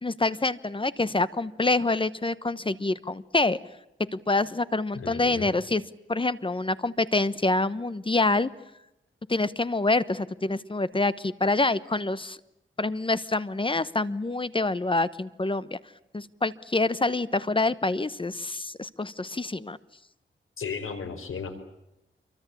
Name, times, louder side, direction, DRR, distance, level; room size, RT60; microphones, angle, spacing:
voice 1, 0.0-3.6 4.1-5.8 6.1-8.5 9.3-12.4 12.8-15.8 16.1-19.8, left 2 dB, 25° left, 15 dB, 1.1 m, -26 dB
voice 2, 4.9-5.5 20.6-21.5, left 6 dB, 90° left, 7 dB, 4.5 m, -35 dB
27.5 x 24.0 x 8.5 m, 0.87 s
wide cardioid pair, 120°, 21 cm